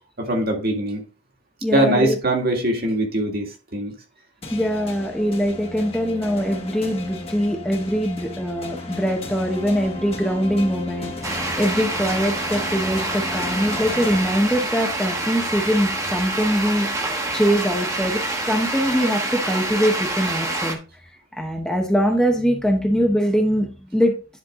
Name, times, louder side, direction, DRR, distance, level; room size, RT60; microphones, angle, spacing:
voice 1, 0.2-1.0 1.7-3.9, right 1 dB, 50° right, 2.0 m, -22 dB
voice 2, 1.6-2.2 4.5-20.8 21.3-24.2, equal, 5° left, 0.9 m, -22 dB
sound 1, 4.4-15.0, left 2 dB, 30° left, 1.4 m, -34 dB
sound 2, 11.2-20.7, right 2 dB, 15° right, 1.2 m, -27 dB
10.5 x 4.6 x 3.7 m
head